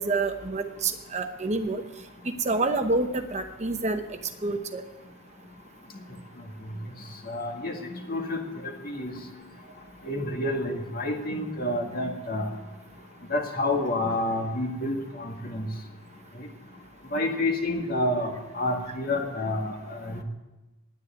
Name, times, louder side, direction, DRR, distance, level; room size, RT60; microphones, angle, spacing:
voice 1, 0.0-1.8 2.2-4.0 4.4-4.8, right 3 dB, 35° right, 7 dB, 0.8 m, -27 dB
voice 2, 7.3-7.7 8.1-9.1 10.1-12.5 13.3-15.7 16.4-16.5 17.1-20.2, left 1 dB, 45° left, 2 dB, 1.9 m, -29 dB
9.7 x 9.6 x 9.4 m, 1.1 s
head